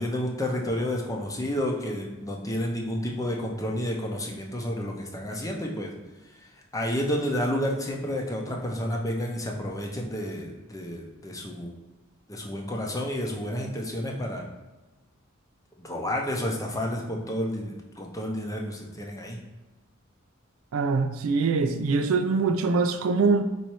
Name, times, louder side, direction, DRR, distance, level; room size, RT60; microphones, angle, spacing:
voice 1, 0.0-5.9 6.4-11.8 12.3-14.5 15.8-19.4, equal, 15° left, 0 dB, 0.7 m, -30 dB
voice 2, 20.7-23.4, right 4 dB, 75° right, 8 dB, 0.4 m, -23 dB
4.2 x 2.7 x 4.6 m, 1.1 s
head